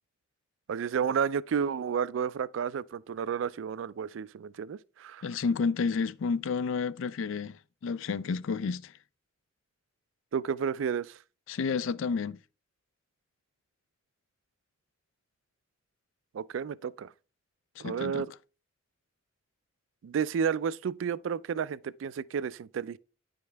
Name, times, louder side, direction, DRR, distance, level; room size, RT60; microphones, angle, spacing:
voice 1, 0.7-5.2 10.3-11.2 16.3-17.1 17.8-18.3 20.0-23.0, right 7 dB, 85° right, 0.3 m, -31 dB
voice 2, 5.2-7.6 7.8-8.9 11.5-12.4 17.8-18.2, left 5 dB, 80° left, 0.4 m, -30 dB
9.4 x 5.2 x 3.3 m
head